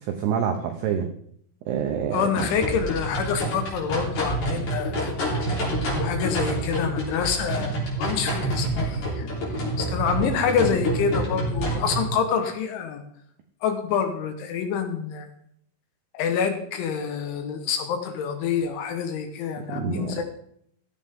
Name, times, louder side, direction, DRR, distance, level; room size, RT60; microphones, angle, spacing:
voice 1, 0.1-1.1 1.7-2.3 19.7-20.1, right 8 dB, 80° right, 4 dB, 2.4 m, -26 dB
voice 2, 2.1-9.3 9.8-13.0 13.6-15.3 16.1-20.2, left 7 dB, 70° left, 6 dB, 3.5 m, -27 dB
sound 1, 2.4-12.1, right 1 dB, 40° left, 4.3 m, -28 dB
15.0 x 11.5 x 3.7 m, 0.66 s
omnidirectional pair, 6.0 m